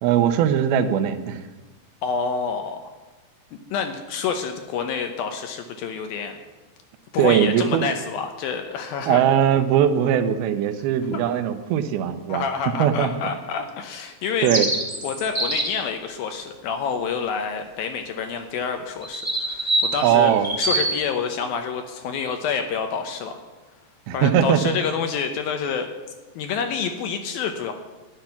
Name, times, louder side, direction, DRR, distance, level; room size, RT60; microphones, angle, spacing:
voice 1, 0.0-1.4 7.2-7.9 9.1-12.4 12.8-13.1 14.4-14.7 20.0-20.5 24.1-24.8, right 9 dB, 75° right, 9 dB, 2.5 m, -20 dB
voice 2, 2.0-2.9 3.7-6.4 7.1-9.2 12.3-14.5 15.0-20.3 20.6-23.4 24.1-25.9 26.4-27.7, left 6 dB, 75° left, 6 dB, 2.3 m, -28 dB
sound 1, 14.4-15.9 19.0-20.9, right 2 dB, 15° right, 0.8 m, -25 dB
13.0 x 10.5 x 5.8 m, 1.3 s
omnidirectional pair, 4.9 m